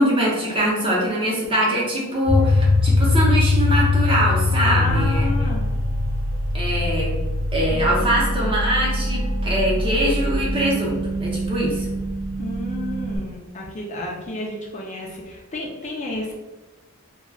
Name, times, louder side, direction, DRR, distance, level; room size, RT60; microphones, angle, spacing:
voice 1, 0.0-5.3 6.5-7.2 7.5-11.9, right 1 dB, 25° right, -4 dB, 0.6 m, -22 dB
sound 1, 2.2-13.2, left 2 dB, 85° right, 1.0 m, -22 dB
voice 2, 4.6-5.7 12.4-16.3, left 2 dB, 35° left, -1 dB, 0.4 m, -31 dB
2.3 x 2.1 x 3.4 m, 1.1 s
head